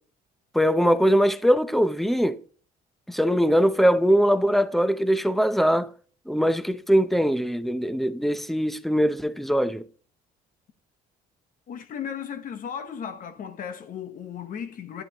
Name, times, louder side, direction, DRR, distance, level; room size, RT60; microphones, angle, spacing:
voice 1, 0.5-2.4 3.1-5.9 6.3-9.8, equal, ahead, 0.7 m, -21 dB
voice 2, 11.7-15.0, left 8 dB, 55° left, 1.1 m, -35 dB
11.0 x 9.3 x 3.0 m
cardioid pair, 110°, 17 cm